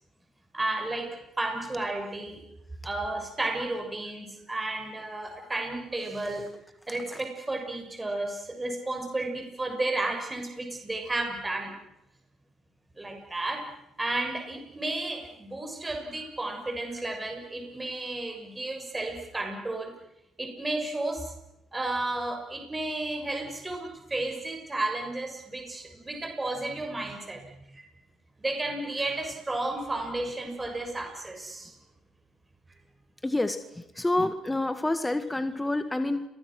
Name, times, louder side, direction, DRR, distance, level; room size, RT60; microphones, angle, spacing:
voice 1, 0.5-1.1 1.4-2.4 2.8-6.5 6.9-11.7 13.0-13.6 14.0-19.9 20.4-21.3 21.7-27.4 27.7-27.8 28.4-31.7, right 2 dB, 20° right, 3 dB, 6.7 m, -32 dB
voice 2, 6.9-7.2 33.2-33.6 34.0-36.2, left 2 dB, 15° left, 10 dB, 1.8 m, -28 dB
30.0 x 23.0 x 6.4 m, 0.86 s
hypercardioid pair, 50°, 0 cm